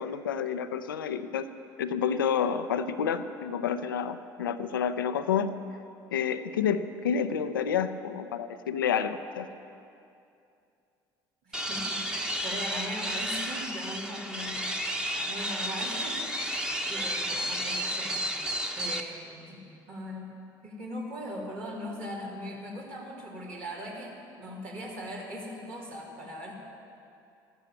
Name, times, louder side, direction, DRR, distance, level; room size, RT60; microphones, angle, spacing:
voice 1, 0.0-1.5 1.8-5.5 6.1-9.5, left 7 dB, 90° left, 11 dB, 0.6 m, -29 dB
voice 2, 11.4-14.9 15.2-18.3 18.8-20.3 20.6-26.5, equal, 70° right, -4 dB, 3.6 m, -40 dB
sound 1, 11.5-19.0, equal, 5° right, 1.3 m, -32 dB
14.0 x 12.5 x 7.5 m, 2.6 s
hypercardioid pair, 60°, 11 cm